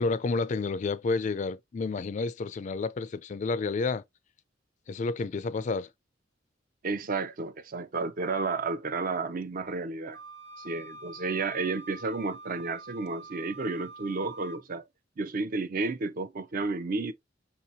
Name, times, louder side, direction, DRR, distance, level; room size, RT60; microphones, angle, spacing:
voice 1, 0.0-4.0 4.9-5.9, left 4 dB, 40° left, 0.3 m, -30 dB
voice 2, 6.8-10.2 10.6-14.8 15.2-17.1, right 3 dB, 50° right, 0.5 m, -32 dB
Wind instrument woodwind instrument, 10.1-14.6, right 2 dB, 70° right, 1.0 m, -46 dB
5.4 x 2.8 x 2.7 m
head